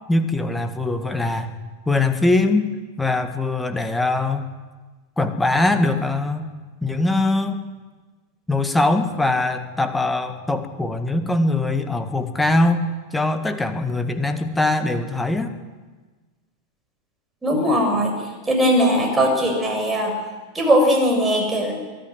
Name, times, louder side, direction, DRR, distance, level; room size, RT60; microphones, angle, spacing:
voice 1, 0.1-1.5 1.9-2.7 3.0-4.4 5.2-6.5 6.8-7.6 8.5-12.9 13.1-15.5, left 2 dB, 5° left, 8 dB, 1.9 m, -21 dB
voice 2, 17.4-18.1 18.5-20.1 20.5-21.7, equal, 10° right, 2 dB, 7.2 m, -19 dB
23.5 x 13.5 x 9.8 m, 1.3 s
figure-of-eight pair, 90°, 0 cm